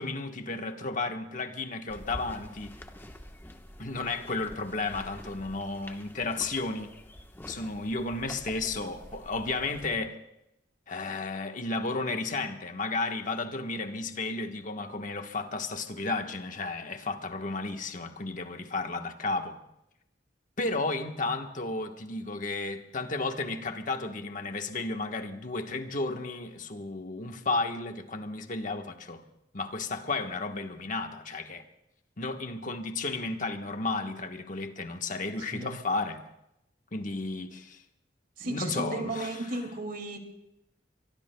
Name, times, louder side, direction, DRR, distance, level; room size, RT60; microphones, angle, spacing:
voice 1, 0.0-2.8 3.8-6.9 7.5-10.2 10.9-19.6 20.6-29.2 29.5-31.6 32.2-36.2 36.9-37.8 38.4-39.6, left 3 dB, 45° left, 1.3 m, -33 dB
sound 1, 1.9-10.0, left 1 dB, 15° left, 1.1 m, -47 dB
voice 2, 38.4-40.2, right 2 dB, 55° right, 2.3 m, -34 dB
24.5 x 24.0 x 2.3 m
head